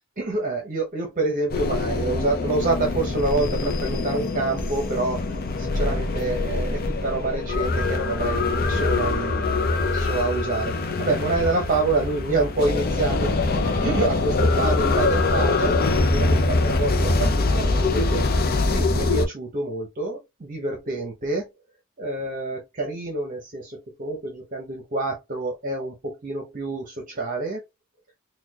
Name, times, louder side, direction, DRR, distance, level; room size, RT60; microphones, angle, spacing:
voice 1, 0.2-18.3 18.7-21.5 22.0-27.6, right 3 dB, 40° right, 0.8 m, -27 dB
sound 1, 1.5-19.2, left 3 dB, 45° left, 0.6 m, -23 dB
4.2 x 2.3 x 2.8 m
head